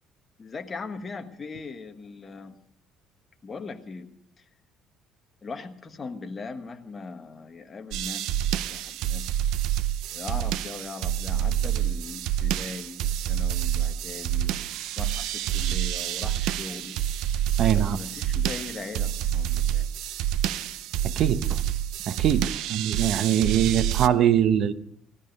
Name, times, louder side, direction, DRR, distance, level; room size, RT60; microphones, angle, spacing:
voice 1, 0.4-2.6 3.4-4.1 4.4-4.5 5.4-9.3 10.1-14.7 14.9-17.0 17.7-19.9, left 4 dB, 25° left, 5 dB, 1.4 m, -39 dB
sound 1, 7.9-24.1, right 11 dB, 75° right, 0.6 m, -28 dB
voice 2, 17.6-18.0 21.2-21.5 22.1-24.7, right 9 dB, 50° right, 13 dB, 0.8 m, -22 dB
16.5 x 13.0 x 5.3 m, 0.68 s
cardioid pair, 135°, 0 cm